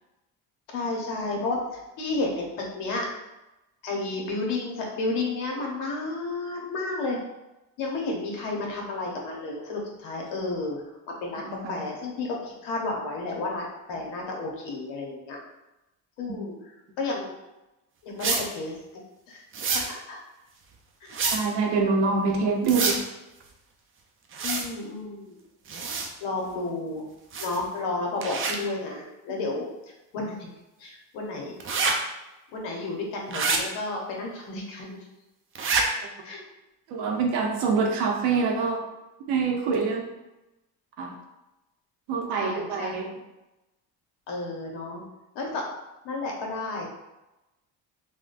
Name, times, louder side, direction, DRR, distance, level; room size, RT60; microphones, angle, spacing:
voice 1, 0.7-3.1 3.8-7.2 7.8-15.4 16.2-16.5 17.0-17.3 18.0-19.0 19.3-19.4 19.9-20.2 21.0-21.5 24.4-25.4 26.2-27.1 27.4-30.5 30.8-31.6 32.5-35.1 36.2-36.4 42.3-43.0 44.3-45.0 45.3-45.6 46.0-46.9, left 3 dB, 80° left, -1 dB, 1.0 m, -32 dB
sound 1, 18.2-18.4 19.5-19.9 21.1-21.4 22.6-23.0 24.3-24.7 25.7-26.1 27.3-27.6 28.2-28.5 31.6-31.9 33.3-33.6 35.6-35.8, right 4 dB, 30° right, 0.5 m, -26 dB
voice 2, 21.3-23.0 36.9-38.9 39.3-40.1 41.0-41.2 42.1-43.1, right 4 dB, 75° right, 1 dB, 0.8 m, -25 dB
3.6 x 2.2 x 2.5 m, 0.98 s
supercardioid pair, 90°, 42 cm